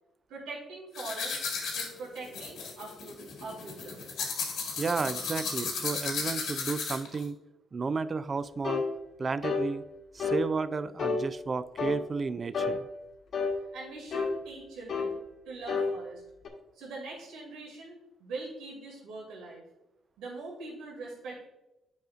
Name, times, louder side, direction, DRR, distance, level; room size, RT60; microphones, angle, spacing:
voice 1, 0.3-1.4 1.7-4.0 13.7-15.2 15.4-16.2 16.7-19.6 20.2-21.4, right 3 dB, 85° right, -3 dB, 2.2 m, -42 dB
sound 1, 1.0-7.2, left 5 dB, 80° left, 1.6 m, -35 dB
voice 2, 4.8-7.4 7.7-8.8 9.2-9.8 10.1-12.9, right 4 dB, 35° right, 14 dB, 0.3 m, -32 dB
sound 2, 8.6-8.9 9.4-9.7 10.2-10.5 11.0-11.2 11.8-12.0 12.5-12.8 13.3-13.6 14.1-14.3 14.9-15.1 15.7-15.9 16.4-16.5, left 4 dB, 60° left, 1.1 m, -29 dB
9.3 x 5.0 x 2.4 m, 0.92 s
cardioid pair, 90°, 0 cm